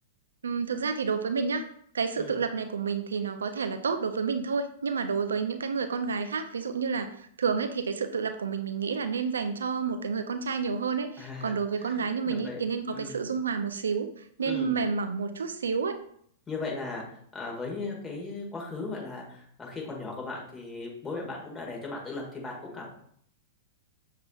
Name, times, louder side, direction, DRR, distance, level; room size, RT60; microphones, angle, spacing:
voice 1, 0.4-1.7 1.9-7.1 7.4-16.0, right 5 dB, 85° right, 8 dB, 0.4 m, -30 dB
voice 2, 11.2-12.6 12.9-13.2 14.4-14.8 16.5-17.0 17.3-22.9, left 3 dB, 20° left, -1 dB, 1.5 m, -37 dB
6.9 x 2.8 x 2.3 m, 0.65 s
hypercardioid pair, 115°, 0 cm